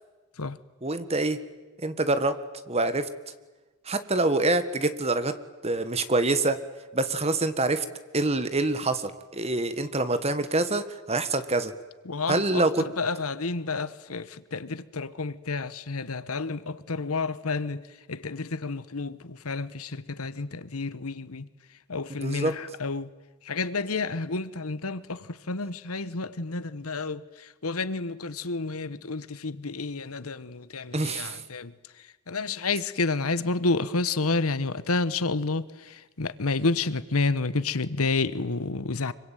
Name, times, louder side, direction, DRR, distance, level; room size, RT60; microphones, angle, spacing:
voice 1, 0.8-1.4 1.8-2.4 2.7-3.1 3.8-5.3 5.6-6.6 6.9-7.8 8.1-11.7 12.3-12.9 22.2-22.5 30.9-31.4, right 2 dB, 30° right, 1.6 m, -26 dB
voice 2, 12.1-12.6 13.0-17.8 18.1-21.4 21.9-23.1 23.5-27.2 27.6-31.7 32.3-35.7 36.2-39.1, left 3 dB, 75° left, 1.2 m, -30 dB
25.5 x 24.0 x 9.2 m
head